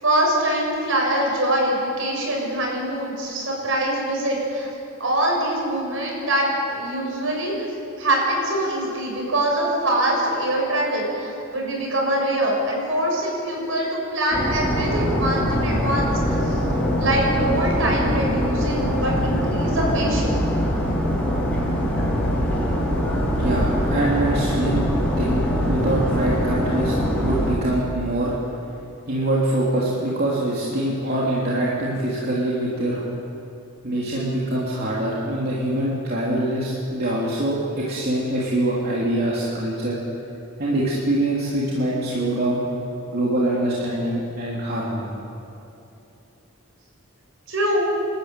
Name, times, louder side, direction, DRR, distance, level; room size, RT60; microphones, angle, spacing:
voice 1, 0.0-4.7 5.0-7.5 8.0-16.4 17.0-20.5 47.5-47.9, right 1 dB, 65° right, -1 dB, 6.8 m, -23 dB
sound 1, 14.3-27.5, equal, 5° left, 6.2 m, -23 dB
voice 2, 23.4-24.8 25.2-26.9 27.2-28.3 29.1-33.1 33.8-40.0 40.6-42.7 43.1-45.1, right 1 dB, 45° right, -6 dB, 3.3 m, -24 dB
28.0 x 13.0 x 9.2 m, 2.9 s
head